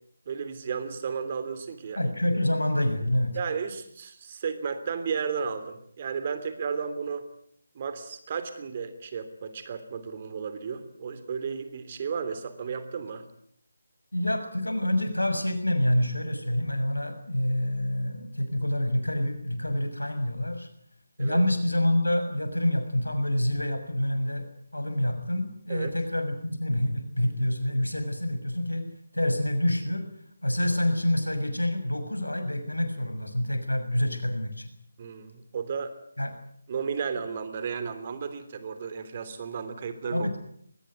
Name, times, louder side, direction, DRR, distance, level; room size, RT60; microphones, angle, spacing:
voice 1, 0.3-2.1 3.3-7.3 7.7-13.3 21.2-21.4 25.7-25.9 35.0-35.9 36.7-40.3, right 6 dB, 30° right, 11 dB, 3.1 m, -33 dB
voice 2, 2.0-3.3 14.1-20.7 21.2-24.4 24.7-28.8 29.1-30.0 30.4-34.7 36.2-36.3 40.1-40.4, left 1 dB, 80° left, 8 dB, 6.6 m, -27 dB
23.0 x 20.5 x 9.4 m, 0.67 s
figure-of-eight pair, 155°, 0 cm